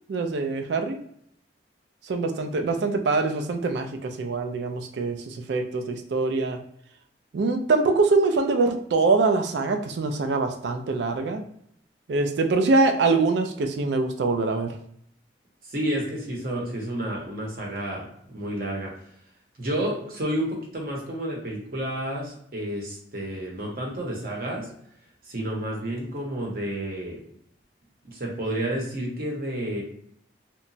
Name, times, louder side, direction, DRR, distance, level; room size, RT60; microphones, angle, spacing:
voice 1, 0.1-1.0 2.0-6.6 7.3-11.4 12.1-14.8, right 3 dB, 70° right, 6 dB, 0.4 m, -24 dB
voice 2, 15.7-18.9 19.6-24.7 25.3-27.2 28.0-29.8, right 1 dB, 50° right, -1 dB, 0.7 m, -30 dB
2.8 x 2.1 x 2.6 m, 0.70 s
head